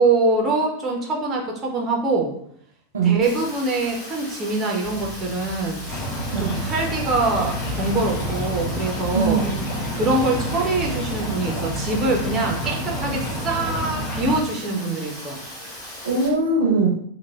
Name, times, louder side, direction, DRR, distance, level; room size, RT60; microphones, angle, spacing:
voice 1, 0.0-2.3 3.0-6.1 6.4-9.4 9.9-15.4, right 2 dB, 25° right, -1 dB, 0.6 m, -24 dB
Rain, 3.2-16.3, left 1 dB, 30° left, 1.4 m, -38 dB
Bass guitar, 4.8-8.4 9.0-9.6 9.9-12.0, right 2 dB, 15° left, 1.2 m, -38 dB
sound 1, 5.9-14.4, equal, 45° left, 1.5 m, -28 dB
voice 2, 9.1-9.7 16.0-16.9, right 4 dB, 65° right, 1 dB, 0.6 m, -21 dB
3.1 x 2.1 x 2.2 m, 0.67 s
figure-of-eight pair, 90°, 0 cm